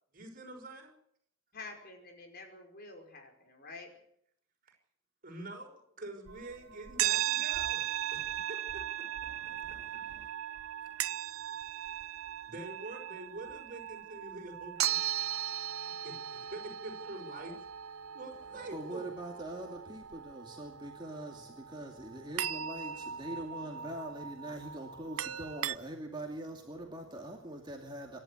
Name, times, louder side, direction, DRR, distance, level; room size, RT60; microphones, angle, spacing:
voice 1, 0.1-0.9 4.6-4.8 5.2-9.0 9.7-9.8 10.8-10.9 12.4-15.0 15.8-17.6 18.1-19.1, right 2 dB, 40° right, 3 dB, 5.6 m, -46 dB
voice 2, 1.5-3.9, left 3 dB, 45° left, 4 dB, 5.2 m, -48 dB
sound 1, 6.3-25.8, right 11 dB, 85° right, 0.7 m, -38 dB
voice 3, 9.3-10.3 18.6-28.2, right 1 dB, 20° right, 0 dB, 2.4 m, -43 dB
26.5 x 12.0 x 8.4 m, 0.67 s
head